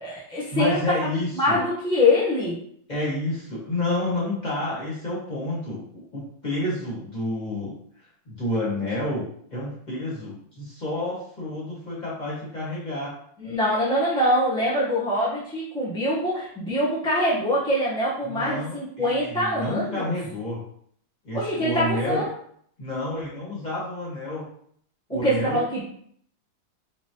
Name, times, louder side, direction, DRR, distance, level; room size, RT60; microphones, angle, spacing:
voice 1, 0.0-0.8 1.4-2.6 13.4-20.1 21.3-22.2 25.2-25.8, left 1 dB, 5° left, -9 dB, 0.8 m, -24 dB
voice 2, 0.5-1.6 2.9-7.8 8.3-13.1 18.2-20.6 21.2-22.3 22.8-24.5 25.1-25.6, left 1 dB, 20° left, -7 dB, 1.7 m, -29 dB
4.2 x 4.1 x 3.1 m, 0.64 s
omnidirectional pair, 2.4 m